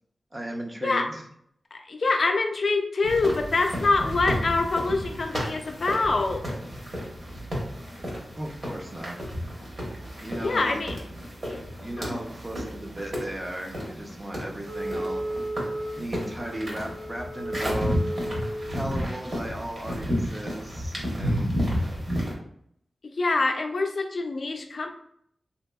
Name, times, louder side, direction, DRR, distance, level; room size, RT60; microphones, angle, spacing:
voice 1, 0.3-1.2 8.4-9.2 10.2-10.8 11.8-15.2 16.0-18.0 18.7-21.5, right 1 dB, 30° right, 1 dB, 0.5 m, -36 dB
voice 2, 1.7-6.4 10.4-10.9 11.5-11.6 12.0-12.2 23.0-24.9, left 3 dB, 60° left, 3 dB, 0.4 m, -25 dB
sound 1, 3.0-22.3, equal, 45° right, 1.1 m, -32 dB
Wind instrument woodwind instrument, 14.6-18.8, right 1 dB, 80° right, 0.8 m, -34 dB
3.3 x 2.8 x 2.2 m, 0.69 s
wide cardioid pair, 120°, 0 cm